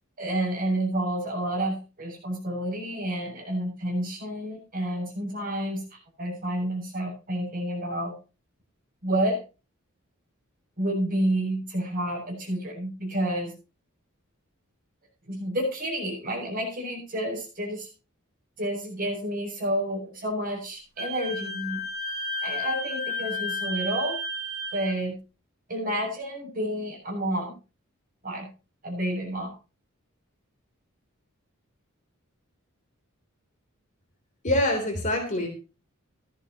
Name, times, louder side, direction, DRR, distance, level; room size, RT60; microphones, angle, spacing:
voice 1, 0.2-8.1 9.0-9.4 10.8-13.5 15.3-17.9 18.6-21.8 22.4-24.2 24.7-25.2 25.7-27.5 28.2-28.5 28.8-29.5, right 1 dB, 40° right, 1 dB, 7.3 m, -29 dB
Wind instrument woodwind instrument, 21.0-24.9, left 2 dB, 80° right, 3.7 m, -32 dB
voice 2, 34.4-35.5, left 1 dB, 35° left, 3 dB, 3.4 m, -25 dB
16.5 x 13.5 x 3.0 m, 0.31 s
head